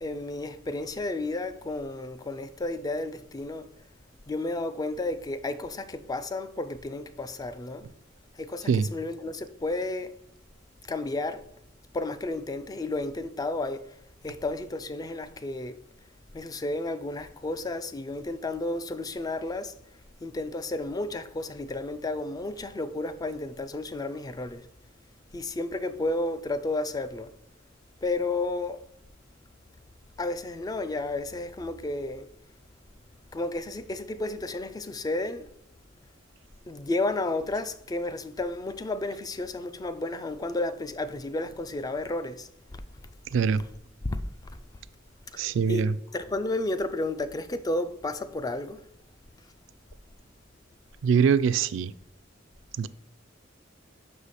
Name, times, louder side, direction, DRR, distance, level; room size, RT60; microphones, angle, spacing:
voice 1, 0.0-3.7 4.3-7.9 8.4-10.2 10.9-11.4 11.9-14.0 14.2-15.8 16.3-19.7 20.2-24.7 25.3-27.3 28.0-28.8 30.2-32.3 33.3-35.5 36.7-42.8 43.6-43.7 44.0-44.2 45.3-45.4 45.7-48.8, left 2 dB, 20° left, 0.3 m, -32 dB
voice 2, 43.3-43.6 45.4-46.0 51.0-51.9 52.8-52.9, right 6 dB, 70° right, 0.3 m, -23 dB
5.6 x 4.8 x 4.1 m
head